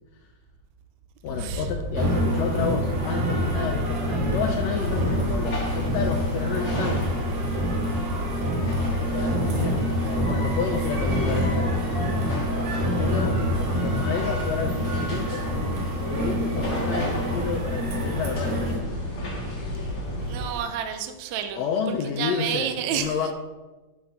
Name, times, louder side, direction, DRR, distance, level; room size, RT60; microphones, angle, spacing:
voice 1, 1.2-7.1 9.0-11.8 13.0-15.5 16.0-19.0 21.5-23.3, left 6 dB, 85° left, 4 dB, 1.5 m, -30 dB
sound 1, 1.2-20.4, equal, 60° left, 1.7 m, -32 dB
sound 2, 2.0-18.8, equal, 65° right, 2.5 m, -27 dB
sound 3, 4.8-20.6, equal, 40° left, 2.7 m, -36 dB
voice 2, 20.3-21.6 22.2-23.1, right 9 dB, 80° right, 7 dB, 1.9 m, -29 dB
9.5 x 3.5 x 5.6 m, 1.2 s
omnidirectional pair, 3.5 m